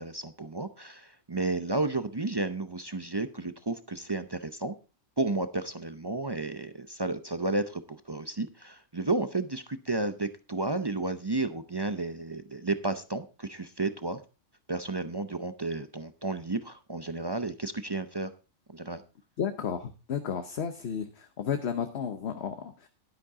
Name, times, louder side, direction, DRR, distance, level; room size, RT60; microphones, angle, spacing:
voice 1, 0.0-4.8 5.2-14.2 14.7-18.3 18.7-19.0, right 2 dB, 30° right, 11 dB, 0.5 m, -32 dB
voice 2, 19.4-22.9, left 7 dB, 55° left, 8 dB, 1.2 m, -33 dB
11.5 x 10.5 x 3.6 m, 0.33 s
omnidirectional pair, 1.4 m